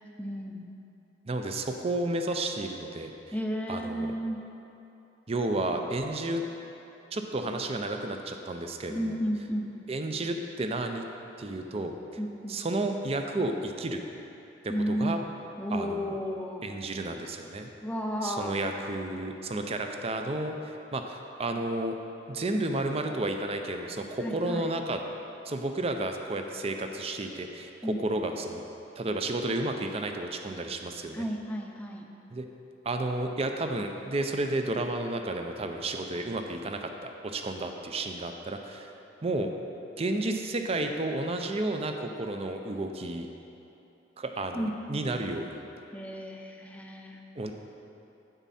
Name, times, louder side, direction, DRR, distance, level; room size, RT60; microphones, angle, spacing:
voice 1, 0.2-0.7 3.3-4.4 5.7-5.8 8.9-9.7 12.2-12.6 14.7-15.3 15.6-16.7 17.8-18.6 24.2-24.7 27.8-28.0 31.1-32.1 44.5-45.0 45.9-47.2, equal, 10° left, 1 dB, 0.6 m, -33 dB
voice 2, 1.3-3.1 3.7-4.1 5.3-6.4 7.1-9.2 9.9-11.1 11.4-11.9 12.5-14.0 14.6-15.2 15.7-16.2 16.6-17.7 18.2-22.0 22.3-25.0 25.5-28.6 29.0-31.2 32.3-32.4 32.8-38.9 39.2-39.5 40.0-43.3 44.2-45.6 47.4-47.5, right 2 dB, 35° right, 5 dB, 0.5 m, -32 dB
9.1 x 7.3 x 4.2 m, 2.9 s
head